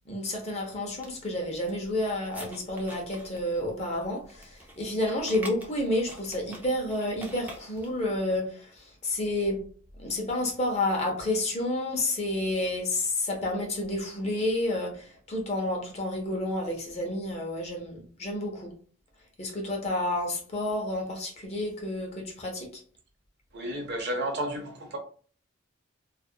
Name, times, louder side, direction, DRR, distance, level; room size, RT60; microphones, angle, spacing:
voice 1, 0.1-9.6 10.0-18.7 19.4-22.8, left 1 dB, 30° left, 0.6 m, -30 dB
sound 1, 0.8-8.0, right 1 dB, 10° right, 0.4 m, -47 dB
voice 2, 23.5-25.0, right 1 dB, 55° right, 0.6 m, -32 dB
2.4 x 2.0 x 2.6 m
head